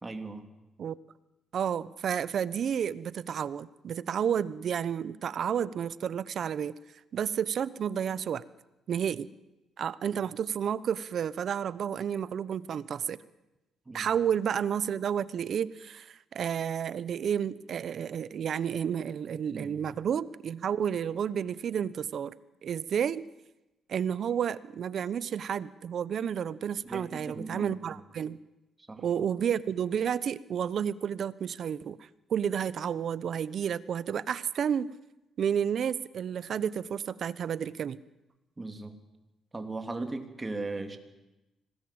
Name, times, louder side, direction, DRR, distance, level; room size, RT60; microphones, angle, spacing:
voice 1, 0.0-0.5 13.9-14.1 19.5-19.8 26.9-27.7 28.9-29.0 38.6-39.0 39.5-41.0, right 2 dB, 20° right, 6 dB, 3.3 m, -37 dB
voice 2, 1.5-6.8 7.1-8.4 8.9-9.3 9.8-13.2 13.9-22.3 22.6-23.2 23.9-28.4 29.0-34.9 35.4-38.0, right 8 dB, 60° right, 18 dB, 1.0 m, -31 dB
26.0 x 19.0 x 8.9 m, 1.0 s
cardioid pair, 90°, 0 cm